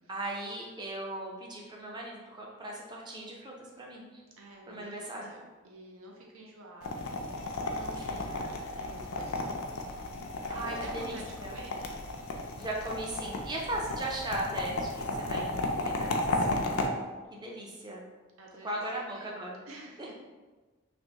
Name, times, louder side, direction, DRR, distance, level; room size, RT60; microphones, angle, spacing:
voice 1, 0.1-4.1 4.7-5.3 7.6-8.5 10.5-11.6 12.6-16.6 17.3-18.0 18.6-19.6 20.0-20.1, right 1 dB, 20° right, -3 dB, 0.5 m, -38 dB
voice 2, 4.4-8.3 8.8-9.8 10.5-11.8 18.4-19.3 19.7-20.1, right 1 dB, 75° right, -1 dB, 0.5 m, -49 dB
sound 1, 6.8-16.9, left 2 dB, 90° left, 0.4 m, -34 dB
3.3 x 2.5 x 2.8 m, 1.3 s
head